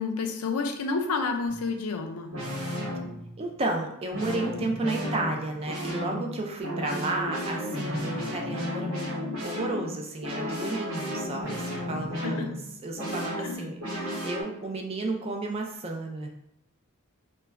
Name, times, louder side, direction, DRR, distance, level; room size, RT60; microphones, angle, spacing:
voice 1, 0.0-2.3 12.2-12.5 13.4-13.6, left 4 dB, 75° left, 4 dB, 0.4 m, -30 dB
sound 1, 1.5-1.7 2.3-3.5 4.1-14.4, equal, 85° right, 1.0 m, -33 dB
voice 2, 3.4-9.0 9.4-12.5 12.8-16.3, right 2 dB, 25° right, 2 dB, 0.3 m, -32 dB
2.2 x 2.2 x 3.4 m, 0.82 s
head